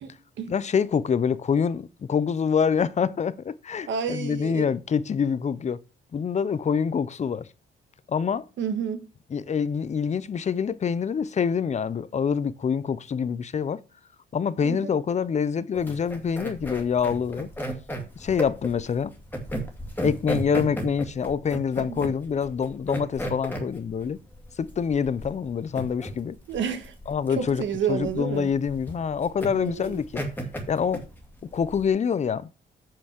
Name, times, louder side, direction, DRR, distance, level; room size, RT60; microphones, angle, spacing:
voice 1, 0.5-5.8 6.1-7.5 8.1-8.5 9.3-13.8 14.3-17.5 18.2-19.1 20.0-24.2 24.6-26.4 27.1-30.2 30.7-31.0 31.5-32.5, left 6 dB, 35° left, 0.6 m, -26 dB
voice 2, 3.9-4.6 8.6-9.1 14.6-14.9 21.8-22.1 26.5-26.9 27.4-28.5 29.5-30.0, right 7 dB, 70° right, 1.6 m, -30 dB
sound 1, 15.7-31.9, equal, 10° left, 2.4 m, -34 dB
6.8 x 5.8 x 6.5 m
cardioid pair, 90°, 20 cm